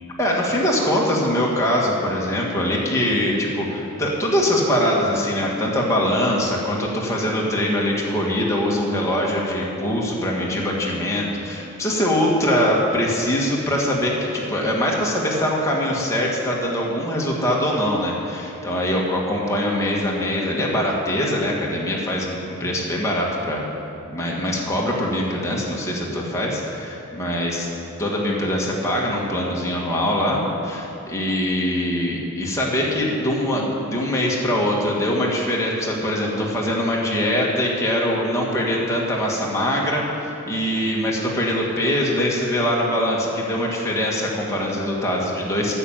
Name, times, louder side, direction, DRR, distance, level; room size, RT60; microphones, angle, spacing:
voice 1, 0.2-23.6 24.1-27.7 28.0-45.7, equal, 15° left, -3 dB, 1.9 m, -23 dB
9.9 x 7.2 x 8.8 m, 3.0 s
head